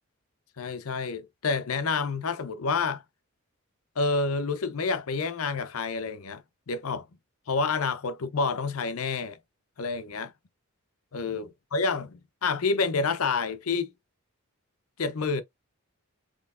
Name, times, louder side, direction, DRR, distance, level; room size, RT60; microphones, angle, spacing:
voice 1, 0.6-3.0 4.0-7.1 7.5-9.4 9.8-10.3 11.1-13.9 15.0-15.4, left 4 dB, 75° left, 0.6 m, -28 dB
4.2 x 3.0 x 2.5 m
head